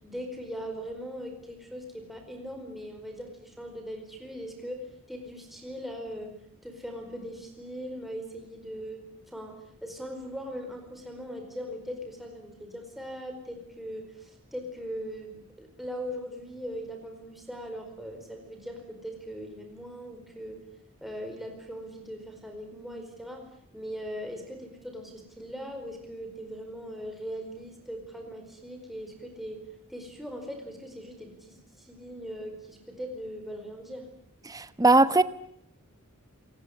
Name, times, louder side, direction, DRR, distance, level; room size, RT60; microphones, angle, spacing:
voice 1, 0.0-6.3 6.6-9.0 9.3-9.5 9.8-20.6 21.0-23.4 23.7-29.6 29.9-34.1, equal, ahead, 3 dB, 4.7 m, -40 dB
voice 2, 34.5-35.2, right 2 dB, 15° right, 14 dB, 1.0 m, -20 dB
26.5 x 19.5 x 9.8 m, 0.70 s
head